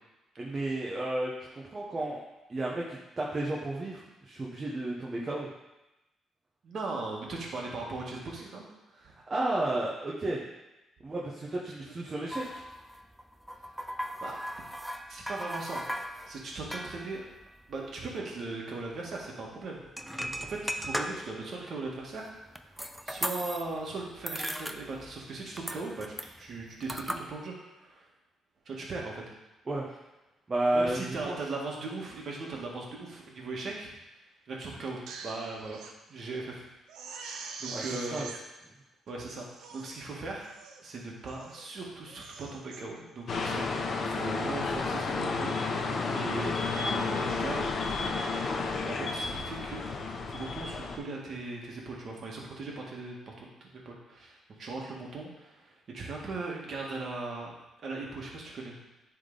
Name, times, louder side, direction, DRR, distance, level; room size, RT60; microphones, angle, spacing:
voice 1, 0.4-2.2 2.5-5.5 9.3-10.4 11.0-12.6 20.2-20.4 29.7-29.9 30.5-31.4 37.7-37.8 38.1-38.3, right 2 dB, 30° right, -3 dB, 1.2 m, -32 dB
voice 2, 6.6-8.6 8.9-9.1 11.7-12.5 14.2-14.3 15.1-15.8 16.3-17.2 17.7-19.8 20.1-22.3 23.1-28.1 28.7-29.2 30.7-33.9 34.5-36.7 37.1-38.2 39.1-40.5 40.8-43.7 44.0-45.8 46.1-46.6 46.9-48.1 48.8-57.5 57.8-58.8, right 3 dB, 55° right, -2 dB, 1.9 m, -39 dB
sound 1, 12.3-18.3 18.6-18.7 18.9-19.1 19.8-21.5 22.0-23.9 24.1-25.3 25.6-27.2, equal, ahead, 0.5 m, -38 dB
Crying sobbing, 34.9-35.9 36.4-36.5 36.9-38.4 39.1-39.2 39.5-39.9 40.4-40.8 41.2-41.7 42.1-42.8 43.3-43.6, right 4 dB, 85° right, 0.7 m, -44 dB
sound 2, 43.3-51.0, left 4 dB, 55° left, 0.9 m, -31 dB
9.7 x 3.8 x 4.0 m, 0.99 s
cardioid pair, 90°, 0 cm